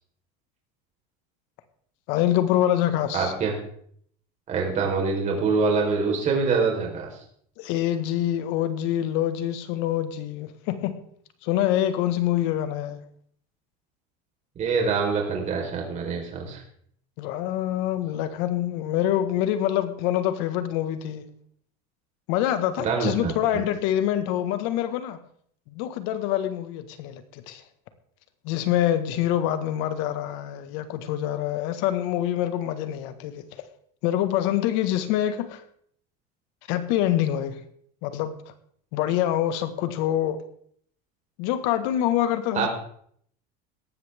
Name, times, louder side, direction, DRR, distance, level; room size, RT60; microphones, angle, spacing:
voice 1, 2.1-3.3 7.6-11.0 11.4-13.0 17.2-21.3 22.3-25.2 25.7-27.6 28.4-33.6 34.0-35.6 36.7-37.6 38.0-38.5 38.9-40.4 41.4-42.7, left 12 dB, 70° left, 10 dB, 1.7 m, -25 dB
voice 2, 3.1-3.5 4.5-7.2 14.6-16.6 22.8-23.6 42.5-42.7, right 4 dB, 35° right, 0 dB, 4.4 m, -25 dB
17.5 x 13.0 x 3.7 m, 0.63 s
supercardioid pair, 130°, 20 cm